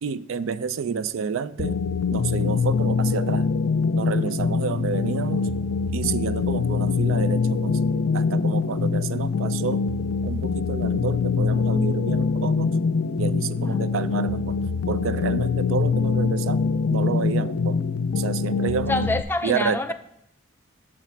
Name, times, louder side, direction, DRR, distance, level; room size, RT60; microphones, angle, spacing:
voice 1, 0.0-1.8 2.1-3.5 3.9-5.5 5.9-7.8 8.1-9.8 10.2-12.8 13.2-14.6 14.9-16.6 16.9-17.8 18.2-19.1 19.4-19.8, right 6 dB, 75° right, 15 dB, 0.4 m, -29 dB
sound 1, 1.6-19.2, left 5 dB, 75° left, 0.4 m, -24 dB
voice 2, 18.9-19.9, left 2 dB, 10° left, 9 dB, 0.4 m, -26 dB
7.2 x 5.8 x 4.5 m, 0.79 s
head